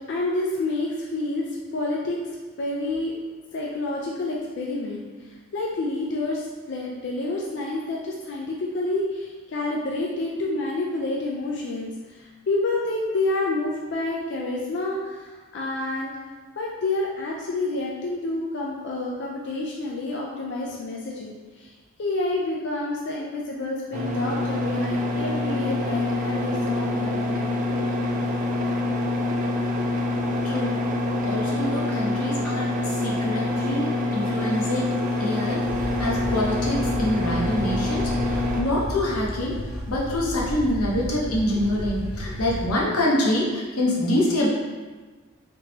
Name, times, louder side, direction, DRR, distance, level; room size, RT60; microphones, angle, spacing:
voice 1, 0.1-2.3 2.6-3.1 3.5-16.1 16.6-21.7 22.0-27.6, left 2 dB, 55° left, -3 dB, 0.4 m, -29 dB
sound 1, 23.9-38.6, left 2 dB, 35° right, 0.3 m, -26 dB
voice 2, 30.4-30.8 31.2-39.6 39.9-44.5, left 1 dB, 90° left, -4 dB, 0.9 m, -26 dB
sound 2, 34.2-42.7, equal, 5° left, 0.6 m, -33 dB
3.6 x 2.9 x 2.8 m, 1.3 s
head